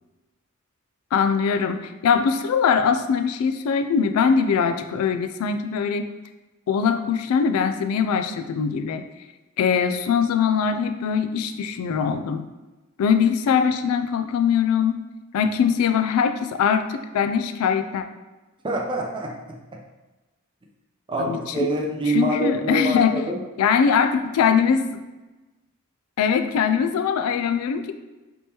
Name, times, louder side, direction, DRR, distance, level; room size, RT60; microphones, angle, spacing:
voice 1, 1.1-6.1 6.7-9.0 9.6-12.5 13.0-15.0 15.3-18.0 21.2-21.7 22.1-23.1 23.6-24.9 26.2-27.9, left 6 dB, 85° left, 13 dB, 0.3 m, -22 dB
voice 2, 18.6-19.6 21.1-23.4, right 1 dB, 25° right, 0 dB, 0.5 m, -26 dB
3.5 x 3.0 x 2.8 m, 1.1 s
head